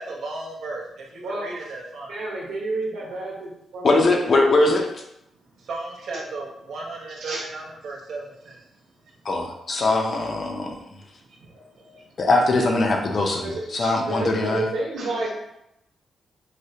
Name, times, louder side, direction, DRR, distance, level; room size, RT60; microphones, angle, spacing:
voice 1, 0.0-2.1 5.7-8.6, right 2 dB, 60° right, -2 dB, 0.8 m, -35 dB
voice 2, 2.1-4.0 7.2-7.4 11.5-11.6 11.9-12.0 13.4-15.3, right 2 dB, 85° right, -4 dB, 1.1 m, -30 dB
voice 3, 3.8-4.9 9.3-10.8 12.2-14.6, left 2 dB, 40° left, 2 dB, 0.5 m, -21 dB
4.8 x 2.1 x 2.8 m, 0.82 s
wide cardioid pair, 165°, 0 cm